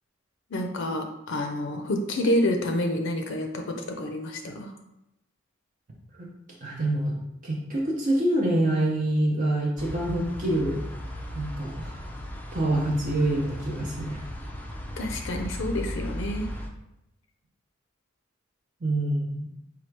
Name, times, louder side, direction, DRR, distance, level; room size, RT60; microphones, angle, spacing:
voice 1, 0.5-4.7 15.0-16.5, left 1 dB, 65° left, 4 dB, 0.5 m, -28 dB
voice 2, 6.6-7.2 7.4-10.8 11.3-11.9 12.5-14.2 18.8-19.5, right 1 dB, 40° right, -4 dB, 0.7 m, -26 dB
sound 1, 9.8-16.7, equal, 10° left, 0.4 m, -36 dB
4.4 x 2.4 x 4.5 m, 0.86 s
head